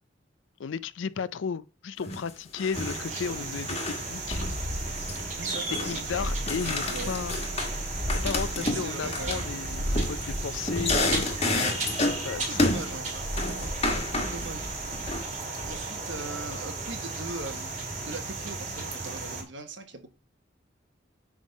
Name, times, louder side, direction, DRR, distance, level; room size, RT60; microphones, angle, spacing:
voice 1, 0.6-4.4 5.9-7.4 8.2-11.4 12.2-12.7, left 6 dB, 85° left, 0.5 m, -34 dB
sound 1, 2.0-2.3 2.6-4.0 4.3-5.3 5.5-6.1 6.5-7.8 8.1-12.3 12.6-13.0 13.4-14.5 14.9-15.2, left 2 dB, 30° left, 1.5 m, -30 dB
sound 2, 2.7-19.4, right 2 dB, 40° right, 2.2 m, -33 dB
voice 2, 5.1-7.1 8.3-9.5 12.4-13.7 14.2-14.7 15.6-17.7 18.0-20.1, right 3 dB, 75° right, 1.2 m, -40 dB
8.5 x 3.6 x 5.3 m
head